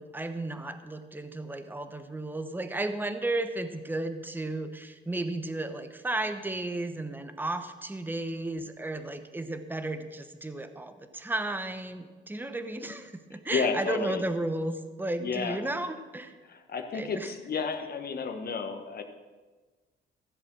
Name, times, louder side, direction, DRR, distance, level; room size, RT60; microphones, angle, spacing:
voice 1, 0.0-14.7 15.0-16.3 16.9-17.3, right 2 dB, 10° right, 9 dB, 1.0 m, -34 dB
voice 2, 13.3-14.2 15.2-15.6 16.4-19.0, left 5 dB, 50° left, 6 dB, 1.3 m, -32 dB
14.5 x 7.8 x 6.2 m, 1.3 s
cardioid pair, 90°, 20 cm